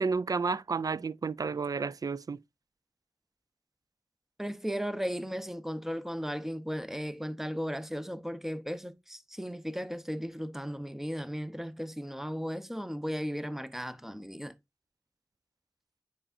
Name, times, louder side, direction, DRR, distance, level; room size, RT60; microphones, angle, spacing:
voice 1, 0.0-2.4, right 4 dB, 55° right, 0.4 m, -31 dB
voice 2, 4.4-14.5, equal, 5° right, 0.8 m, -36 dB
8.6 x 5.5 x 2.5 m
cardioid pair, 50°, 7 cm